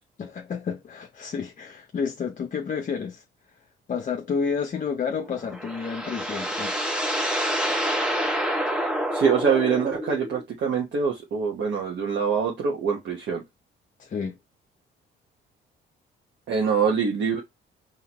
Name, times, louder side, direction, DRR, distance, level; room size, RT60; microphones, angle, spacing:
voice 1, 0.2-3.2 3.9-6.8 14.0-14.4, left 6 dB, 40° left, 0.6 m, -30 dB
sound 1, 5.2-10.4, equal, 5° right, 1.1 m, -27 dB
voice 2, 9.1-13.4 16.5-17.4, right 6 dB, 65° right, 1.1 m, -24 dB
4.3 x 2.9 x 3.0 m
cardioid pair, 90°, 20 cm